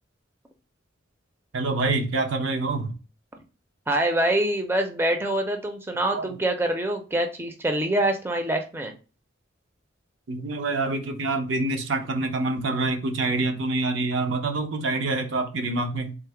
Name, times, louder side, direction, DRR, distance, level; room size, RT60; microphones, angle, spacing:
voice 1, 1.5-3.0 6.1-6.3 10.3-16.2, right 2 dB, 75° right, 0.6 m, -26 dB
voice 2, 3.9-8.9, right 1 dB, 10° right, 0.4 m, -25 dB
3.7 x 2.1 x 4.3 m
head